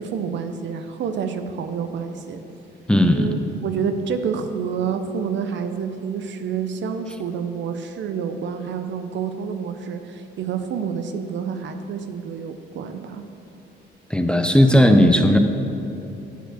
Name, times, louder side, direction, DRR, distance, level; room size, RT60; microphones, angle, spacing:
voice 1, 0.0-2.4 3.1-13.2, right 6 dB, 65° right, 8 dB, 0.6 m, -28 dB
voice 2, 2.9-3.3 14.1-15.4, equal, 5° left, 5 dB, 0.5 m, -15 dB
8.0 x 4.4 x 6.3 m, 2.8 s
cardioid pair, 90°, 20 cm